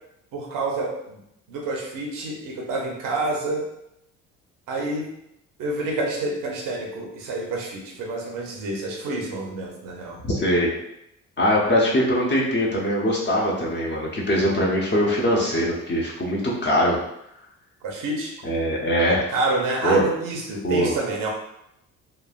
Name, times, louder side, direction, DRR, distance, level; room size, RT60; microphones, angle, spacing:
voice 1, 0.3-1.2 1.5-3.6 4.7-5.1 5.6-10.2 17.8-18.3 19.3-21.3, right 2 dB, 55° right, 0 dB, 0.8 m, -28 dB
voice 2, 10.2-10.7 11.4-17.0 18.4-19.2 19.8-20.0 20.6-20.9, equal, 25° left, -3 dB, 0.9 m, -22 dB
3.1 x 2.4 x 2.4 m, 0.80 s
hypercardioid pair, 50°, 40 cm